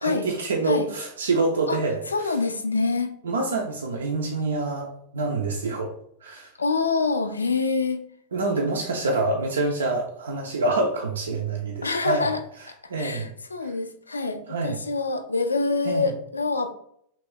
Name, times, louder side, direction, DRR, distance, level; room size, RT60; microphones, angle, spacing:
voice 1, 0.0-2.3 3.2-5.9 6.2-6.5 8.3-12.3 12.9-13.3 13.6-13.7 14.5-14.8 15.8-16.1, right 3 dB, 70° right, 1 dB, 0.4 m, -26 dB
voice 2, 2.1-3.1 6.6-8.0 11.8-12.4 13.0-16.7, left 3 dB, 75° left, 8 dB, 0.4 m, -25 dB
3.2 x 2.4 x 3.6 m, 0.67 s
figure-of-eight pair, 90°, 0 cm